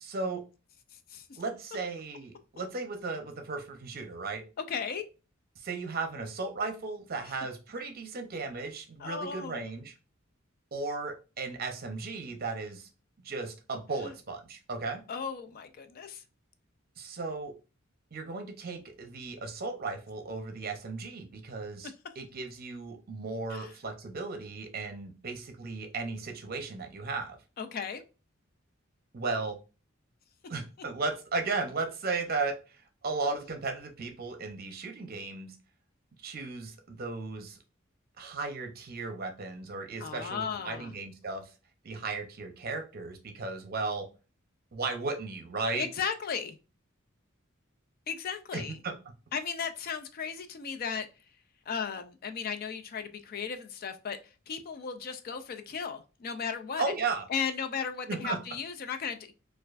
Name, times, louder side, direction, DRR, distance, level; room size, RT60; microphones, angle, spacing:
voice 1, 0.0-0.4 1.4-4.4 5.6-9.9 10.7-12.9 13.2-15.0 17.0-17.5 18.1-27.4 29.1-29.6 30.5-35.6 36.2-37.6 38.2-41.5 41.8-44.1 44.7-45.9 48.5-48.9 56.8-57.3 58.1-58.4, right 3 dB, 45° right, 0.6 m, -35 dB
voice 2, 4.7-5.0 9.0-9.6 14.0-14.1 15.1-16.2 23.5-23.7 27.6-28.0 33.3-33.4 40.0-40.9 45.7-46.6 48.1-48.8 49.3-51.1 51.7-54.2 54.5-56.8 57.3-59.3, left 6 dB, 45° left, 0.4 m, -35 dB
4.4 x 2.4 x 2.4 m
head